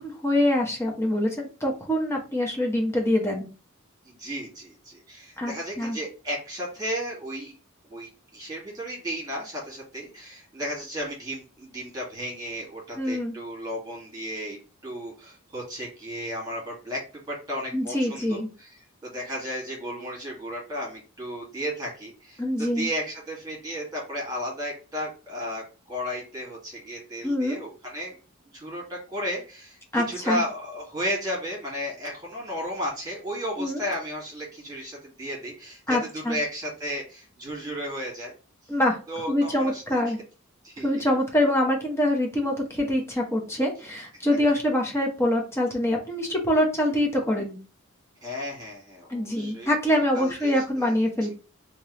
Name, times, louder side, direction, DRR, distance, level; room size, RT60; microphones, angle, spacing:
voice 1, 0.0-3.5 5.4-6.0 13.0-13.3 17.7-18.5 22.4-22.9 27.2-27.6 29.9-30.4 33.6-33.8 35.9-36.4 38.7-39.0 39.3-40.2 40.8-47.6 49.1-51.4, left 1 dB, 10° left, 0 dB, 0.9 m, -25 dB
voice 2, 4.0-7.5 7.9-14.6 14.8-17.0 17.3-18.7 19.0-28.2 28.5-38.3 39.1-39.8 40.6-40.9 48.2-51.0, equal, 20° right, -2 dB, 1.8 m, -34 dB
3.4 x 2.9 x 3.1 m, 0.34 s
head